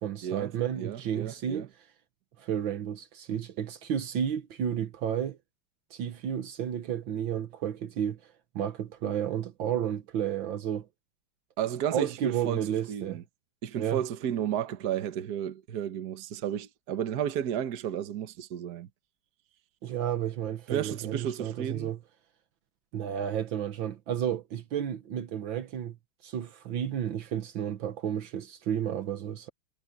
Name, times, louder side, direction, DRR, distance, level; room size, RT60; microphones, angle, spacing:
voice 1, 0.0-1.6 2.4-5.4 5.9-8.2 8.5-10.9 11.9-13.2 13.8-14.0 19.8-22.0 22.9-26.0 26.2-29.5, right 9 dB, 70° right, 1.8 m, -32 dB
voice 2, 0.8-1.7 11.6-13.2 13.6-18.9 20.7-21.9, right 9 dB, 55° right, 1.5 m, -33 dB
omnidirectional pair, 2.3 m